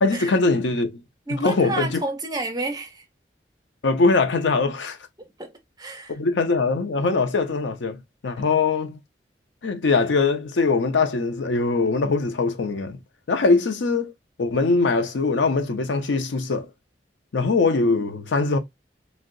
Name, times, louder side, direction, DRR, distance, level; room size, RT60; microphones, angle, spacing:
voice 1, 0.0-1.0 1.4-2.0 3.8-5.0 6.1-9.0 9.6-13.0 13.3-14.1 14.4-16.7 17.3-18.6, left 3 dB, 85° left, 0.5 m, -22 dB
voice 2, 1.3-3.0 5.2-5.5 5.8-6.1, right 2 dB, 20° right, 0.6 m, -30 dB
2.7 x 2.1 x 3.7 m
head